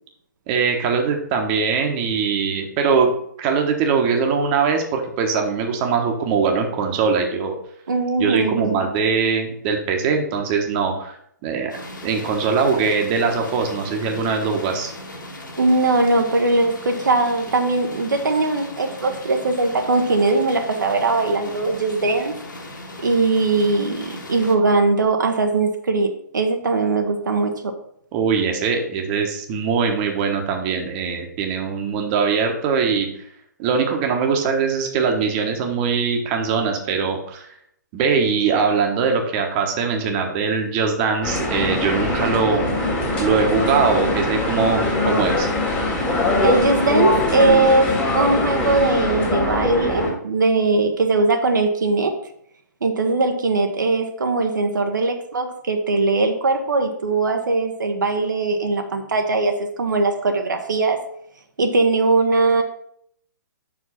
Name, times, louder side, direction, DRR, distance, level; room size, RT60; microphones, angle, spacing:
voice 1, 0.5-3.1 3.4-7.5 8.2-11.2 11.4-11.7 12.0-14.9 28.1-33.1 33.6-37.5 37.9-42.7 43.2-45.5, right 5 dB, 30° right, 3 dB, 1.2 m, -21 dB
voice 2, 7.9-8.8 15.6-22.3 23.0-27.7 46.4-52.1 52.8-61.0 61.6-62.6, right 3 dB, 80° right, 4 dB, 1.1 m, -20 dB
sound 1, 11.7-24.6, left 1 dB, 85° left, 2.0 m, -38 dB
sound 2, 41.2-50.1, left 2 dB, 10° left, 1.9 m, -22 dB
5.7 x 4.9 x 5.7 m, 0.68 s
hypercardioid pair, 140°, 10 cm